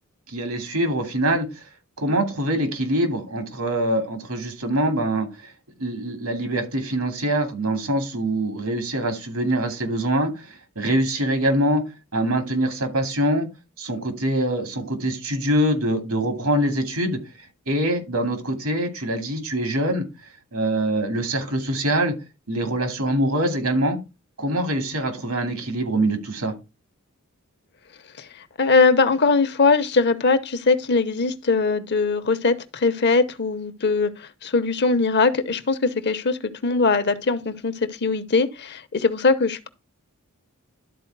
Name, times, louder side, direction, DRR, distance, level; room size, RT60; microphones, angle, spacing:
voice 1, 0.3-1.5 2.0-5.5 5.8-11.8 12.1-13.5 13.8-17.2 17.7-20.0 20.5-22.1 22.5-24.0 24.4-26.5, right 1 dB, 85° right, 2.5 m, -24 dB
voice 2, 28.6-34.1 34.4-37.7 38.0-39.7, left 4 dB, 50° left, 0.8 m, -21 dB
11.5 x 4.3 x 4.7 m
head